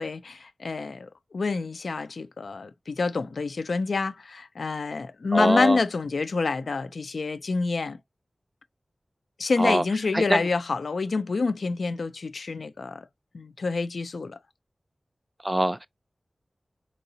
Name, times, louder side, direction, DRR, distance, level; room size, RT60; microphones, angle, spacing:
voice 1, 0.0-8.0 9.4-13.1 13.3-14.4, left 4 dB, 80° left, 0.3 m, -27 dB
voice 2, 5.3-5.8 9.6-9.8 10.1-10.5 15.4-15.9, right 1 dB, 20° right, 0.3 m, -23 dB
3.8 x 2.8 x 2.7 m
cardioid pair, 45°, 0 cm